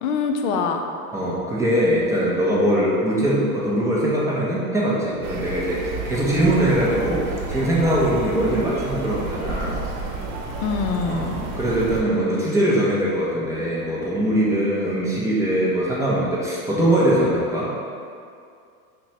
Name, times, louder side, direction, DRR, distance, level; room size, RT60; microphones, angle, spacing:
voice 1, 0.0-0.8 10.6-11.4, left 5 dB, 55° left, 4 dB, 0.5 m, -24 dB
voice 2, 1.1-9.8 11.1-17.7, right 1 dB, 5° right, -6 dB, 0.4 m, -22 dB
sound 1, 5.2-12.0, right 3 dB, 65° right, 0.7 m, -31 dB
5.5 x 2.2 x 2.7 m, 2.3 s
hypercardioid pair, 115°, 45 cm